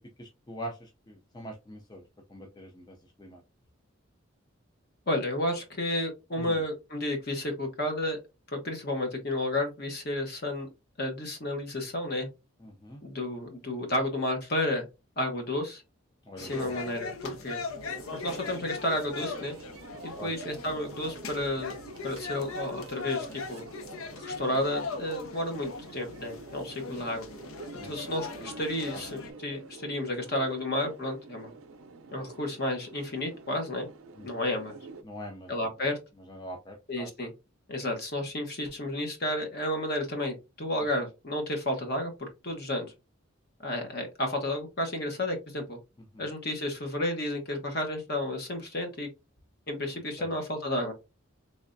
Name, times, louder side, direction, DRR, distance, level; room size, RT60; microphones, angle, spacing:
voice 1, 0.0-2.0 2.3-3.4 6.4-6.6 12.6-13.0 16.3-16.7 20.2-20.3 27.8-27.9 28.9-29.0 34.2-34.3 35.0-35.7 36.3-37.1 46.1-46.3 50.2-50.3, equal, 20° left, 2 dB, 0.5 m, -43 dB
voice 2, 5.1-8.2 8.5-10.7 11.0-12.3 13.0-14.8 15.2-15.8 16.4-17.6 18.1-19.5 20.0-21.7 22.0-23.6 24.2-27.3 27.8-31.5 32.1-33.9 34.2-34.8 35.5-36.0 36.9-37.3 37.7-42.9 43.6-45.8 46.2-49.1 49.7-50.9, left 1 dB, 50° left, 4 dB, 1.0 m, -32 dB
sound 1, 16.4-29.3, left 4 dB, 85° left, 0.6 m, -40 dB
sound 2, 17.8-35.0, right 3 dB, 85° right, 0.6 m, -47 dB
3.4 x 3.2 x 2.6 m, 0.26 s
head